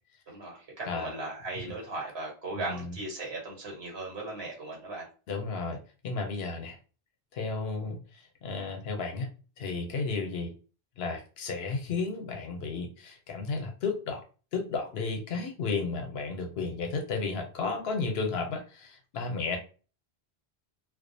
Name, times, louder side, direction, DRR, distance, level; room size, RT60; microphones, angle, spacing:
voice 1, 0.3-5.1, right 2 dB, 85° right, -2 dB, 1.3 m, -37 dB
voice 2, 2.5-3.0 5.3-5.8 6.0-6.8 7.3-9.3 9.6-10.5 11.0-14.2 14.5-19.6, left 4 dB, 80° left, 4 dB, 0.9 m, -33 dB
2.4 x 2.1 x 2.5 m, 0.36 s
omnidirectional pair, 1.0 m